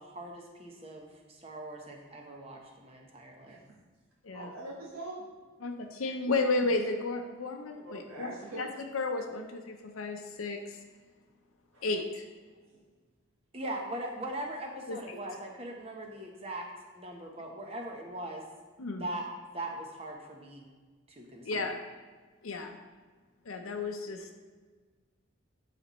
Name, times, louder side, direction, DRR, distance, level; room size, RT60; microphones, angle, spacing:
voice 1, 0.0-3.6 13.5-16.7 16.9-18.4 18.9-19.3 19.5-20.7 21.1-21.5, right 1 dB, 30° right, 1 dB, 0.9 m, -40 dB
voice 2, 4.3-5.2 7.8-8.9 11.7-11.9 12.7-12.8, right 2 dB, 80° right, -5 dB, 1.4 m, -43 dB
voice 3, 5.6-8.3 8.6-8.7 8.9-10.6 11.8-12.2 14.9-15.2 18.8-19.0 21.4-21.8 22.4-22.8 23.5-24.4, left 3 dB, 85° left, 4 dB, 0.7 m, -33 dB
11.5 x 4.2 x 3.1 m, 1.4 s
head